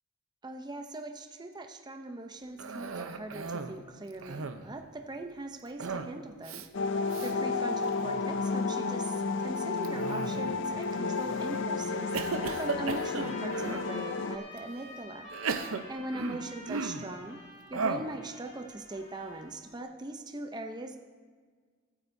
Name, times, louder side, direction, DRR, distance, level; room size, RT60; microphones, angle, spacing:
voice 1, 0.4-6.7 7.2-15.3 15.6-17.4 17.7-21.0, right 2 dB, 20° right, 4 dB, 0.6 m, -41 dB
Cough, 2.6-3.8 4.1-4.8 5.8-6.2 6.4-6.7 7.1-7.3 7.9-8.3 9.8-10.6 11.2-11.6 12.1-13.9 14.6-14.7 15.3-17.1 17.7-18.2, right 4 dB, 75° right, 0.7 m, -36 dB
sound 1, 6.7-14.4, left 4 dB, 55° left, 0.5 m, -32 dB
Trumpet, 12.0-19.7, equal, 30° left, 4.1 m, -49 dB
23.0 x 8.8 x 2.7 m, 1.6 s
head